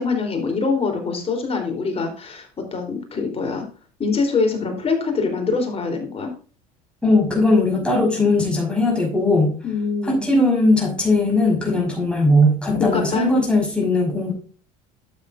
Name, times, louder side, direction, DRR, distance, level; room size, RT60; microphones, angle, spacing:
voice 1, 0.0-3.7 4.0-6.3 9.6-10.2 12.8-13.3, left 4 dB, 30° left, 4 dB, 3.6 m, -24 dB
voice 2, 7.0-9.5 10.0-14.3, left 2 dB, 5° left, -1 dB, 5.4 m, -19 dB
12.0 x 7.6 x 2.6 m, 0.38 s
hypercardioid pair, 85°, 19 cm